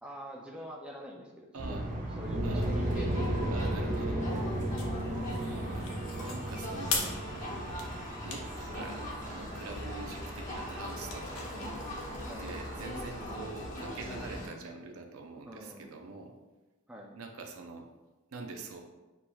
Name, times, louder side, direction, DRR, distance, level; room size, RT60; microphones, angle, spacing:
voice 1, 0.0-3.9 5.0-5.3 12.2-12.5 15.5-15.9 16.9-17.2, equal, 5° right, -1 dB, 0.4 m, -45 dB
voice 2, 1.5-1.9 2.4-2.7 3.5-4.2 5.4-5.8 6.1-7.2 8.2-11.5 12.4-16.3 17.1-17.9 18.3-18.8, right 3 dB, 70° right, 3 dB, 0.5 m, -44 dB
sound 1, 1.6-13.0, right 1 dB, 35° right, 0.7 m, -36 dB
Crowd, 2.6-14.5, equal, 35° left, 0.9 m, -39 dB
sound 2, 4.2-13.1, left 4 dB, 65° left, 0.7 m, -42 dB
6.6 x 2.9 x 2.3 m, 1.1 s
head